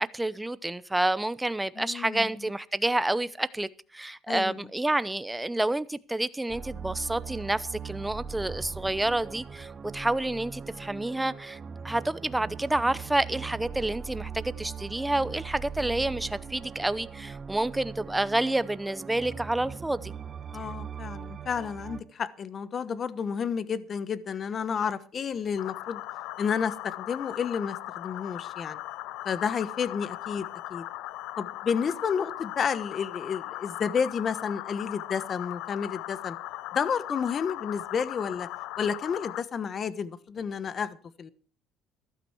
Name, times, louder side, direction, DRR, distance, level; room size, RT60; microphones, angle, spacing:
voice 1, 0.0-11.6 11.8-20.1, right 1 dB, 10° right, 0.7 m, -29 dB
voice 2, 1.8-2.3 4.3-4.6 20.5-26.0 26.4-28.8 29.2-30.8 31.4-36.4 36.7-38.5 38.8-41.3, left 6 dB, 40° left, 1.1 m, -31 dB
sound 1, 6.5-22.0, right 7 dB, 35° right, 1.3 m, -40 dB
sound 2, 25.6-39.4, left 17 dB, 80° left, 0.5 m, -39 dB
14.0 x 12.5 x 4.6 m
cardioid pair, 110°, 0 cm